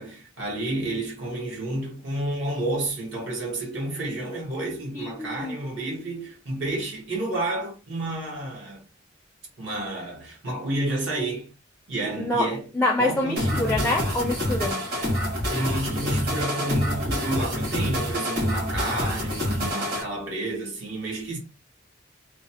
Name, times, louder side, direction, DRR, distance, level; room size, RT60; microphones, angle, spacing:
voice 1, 0.0-8.8 9.6-11.5 11.9-12.7 13.0-14.1 15.5-21.4, right 1 dB, 75° right, 1.2 m, -30 dB
voice 2, 4.9-5.6 12.2-12.5 12.7-14.8, left 2 dB, 10° left, 0.4 m, -26 dB
sound 1, 13.4-20.0, equal, 55° right, 1.6 m, -27 dB
3.0 x 2.1 x 2.8 m
head